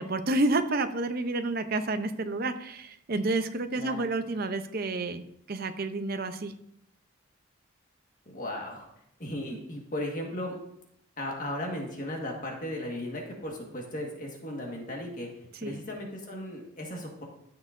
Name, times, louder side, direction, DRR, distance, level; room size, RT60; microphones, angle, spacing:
voice 1, 0.0-6.5 15.6-15.8, right 2 dB, 45° right, 8 dB, 0.6 m, -30 dB
voice 2, 8.3-8.9 9.2-10.6 11.2-15.3 15.6-17.2, left 1 dB, 40° left, 0 dB, 1.6 m, -36 dB
13.5 x 6.4 x 2.6 m, 0.76 s
head